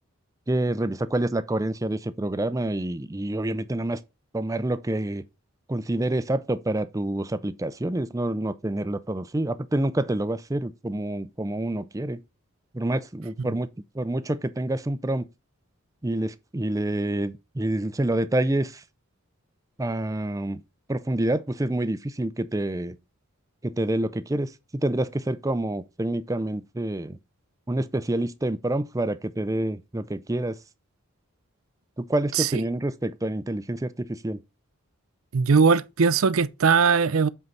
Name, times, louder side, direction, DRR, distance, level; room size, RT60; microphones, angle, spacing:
voice 1, 0.5-4.0 4.3-5.2 5.7-12.2 12.7-13.7 13.9-15.3 16.0-18.8 19.8-20.6 20.9-23.0 23.6-24.5 24.8-27.2 27.7-30.6 32.0-34.4, right 1 dB, 15° right, 0.4 m, -27 dB
voice 2, 35.3-37.3, right 5 dB, 75° right, 0.5 m, -20 dB
7.7 x 4.6 x 4.0 m
head